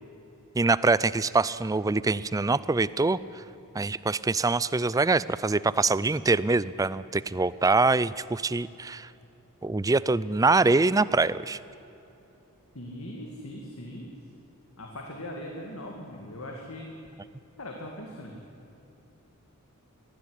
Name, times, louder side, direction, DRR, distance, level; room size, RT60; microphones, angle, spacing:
voice 1, 0.6-3.2 3.7-9.1 9.6-11.6, right 3 dB, 15° right, 18 dB, 0.4 m, -24 dB
voice 2, 12.7-14.1 14.8-16.9 17.6-18.3, left 1 dB, 65° left, 1 dB, 2.3 m, -40 dB
21.0 x 15.0 x 10.0 m, 2.9 s
head